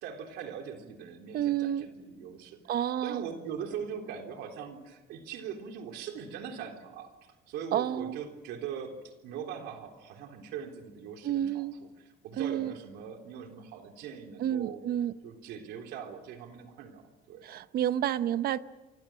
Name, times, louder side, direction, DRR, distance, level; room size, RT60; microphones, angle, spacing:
voice 1, 0.0-7.1 7.5-14.8 15.2-17.0 17.3-17.5, right 7 dB, 85° right, 3.7 m, -41 dB
voice 2, 1.3-1.9 2.7-3.2 7.7-8.2 11.2-11.8 12.4-12.7 14.4-15.1 17.4-18.6, right 11 dB, 65° right, 1.0 m, -30 dB
30.0 x 24.5 x 6.3 m
cardioid pair, 110°, 17 cm